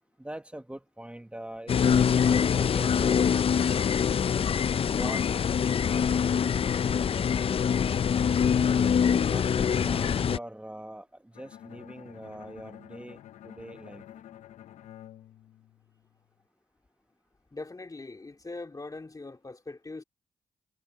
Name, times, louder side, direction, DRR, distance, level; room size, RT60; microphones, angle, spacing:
voice 1, 0.2-3.5 4.8-5.3 9.2-14.0, right 1 dB, 10° right, 1.3 m, -43 dB
sound 1, 1.7-10.4, left 7 dB, 50° left, 0.5 m, -24 dB
Bowed string instrument, 11.3-16.3, left 11 dB, 80° left, 0.9 m, -49 dB
voice 2, 17.5-20.0, left 3 dB, 30° left, 2.7 m, -41 dB
supercardioid pair, 50°, 12 cm